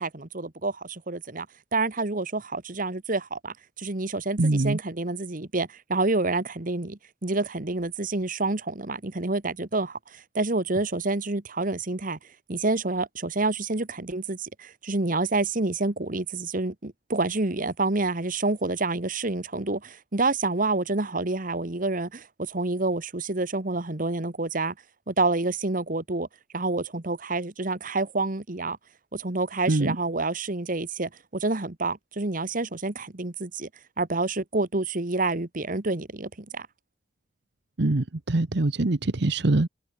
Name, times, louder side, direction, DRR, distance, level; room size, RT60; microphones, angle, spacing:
voice 1, 0.0-1.5 1.7-12.2 12.5-24.7 25.1-26.3 26.5-28.8 29.1-33.7 34.0-36.7, right 3 dB, 45° right, 1.4 m, -28 dB
voice 2, 4.4-4.8 29.7-30.0 37.8-39.7, right 2 dB, 60° right, 1.0 m, -23 dB
head